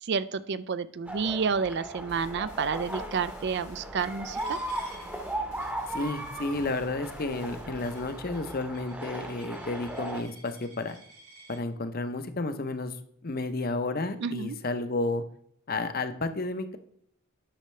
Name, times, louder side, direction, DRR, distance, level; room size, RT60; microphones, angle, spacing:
voice 1, 0.0-4.6 14.2-14.6, right 5 dB, 50° right, 15 dB, 0.4 m, -30 dB
sound 1, 1.1-10.2, right 1 dB, 5° right, 0.8 m, -37 dB
sound 2, 2.1-9.5, left 1 dB, 75° left, 3.0 m, -51 dB
Coin (dropping), 4.3-11.6, right 3 dB, 90° right, 2.7 m, -54 dB
voice 2, 5.9-11.0 11.5-13.0 13.2-15.2 15.7-16.8, left 2 dB, 40° left, 9 dB, 0.7 m, -31 dB
10.0 x 6.4 x 3.2 m, 0.67 s
head